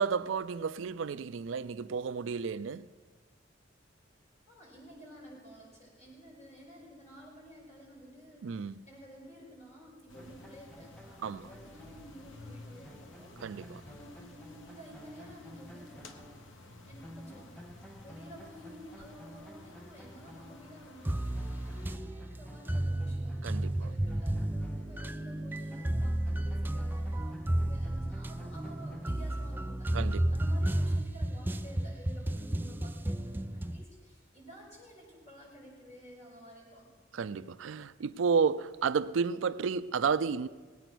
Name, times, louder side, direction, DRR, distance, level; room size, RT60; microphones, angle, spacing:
voice 1, 0.0-2.9 8.4-8.7 11.2-11.5 13.4-13.8 23.4-23.9 29.9-30.3 37.1-40.5, right 5 dB, 85° right, 0.4 m, -31 dB
voice 2, 4.5-16.4 16.8-17.7 18.0-23.3 23.8-36.9, equal, 35° left, 5.5 m, -52 dB
sound 1, 10.1-22.0, left 2 dB, 85° left, 1.0 m, -53 dB
sound 2, 10.1-16.8 17.0-25.3 25.7-29.7, equal, 5° left, 0.8 m, -53 dB
sound 3, 21.1-33.8, right 1 dB, 10° right, 0.3 m, -32 dB
20.0 x 9.1 x 6.1 m
head